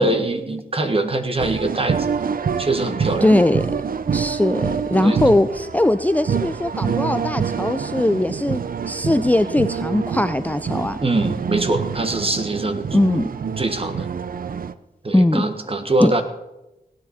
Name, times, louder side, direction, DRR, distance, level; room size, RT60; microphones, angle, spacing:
voice 1, 0.0-2.0 2.6-3.3 5.0-5.2 11.0-12.9 13.3-14.1 15.0-16.2, right 2 dB, 35° right, 6 dB, 1.5 m, -23 dB
sound 1, 1.4-14.7, right 6 dB, 65° right, 0.6 m, -26 dB
voice 2, 3.2-3.7 4.1-11.0 12.9-13.3 15.1-15.5 16.0-16.1, left 1 dB, 10° left, 12 dB, 0.5 m, -20 dB
17.5 x 9.7 x 4.3 m, 0.97 s
cardioid pair, 55°, 16 cm